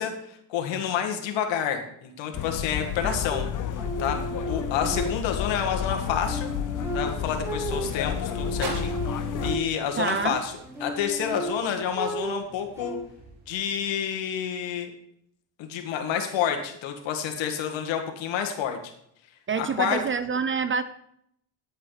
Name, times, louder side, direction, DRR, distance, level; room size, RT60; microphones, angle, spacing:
voice 1, 0.0-3.5 4.0-4.2 4.4-6.5 6.9-10.5 10.8-13.0 13.5-14.9 15.6-18.8 19.6-20.0, left 8 dB, 65° left, 4 dB, 2.0 m, -29 dB
sound 1, 2.3-9.6, left 9 dB, 40° left, 0.8 m, -31 dB
sound 2, 3.3-5.6 6.0-10.0 10.5-13.0, right 1 dB, 5° right, 2.0 m, -34 dB
sound 3, 5.7-13.9, right 4 dB, 90° right, 2.3 m, -45 dB
voice 2, 10.0-10.4 19.5-20.8, right 6 dB, 25° right, 13 dB, 0.4 m, -27 dB
11.0 x 8.0 x 4.0 m, 0.72 s
supercardioid pair, 100°, 48 cm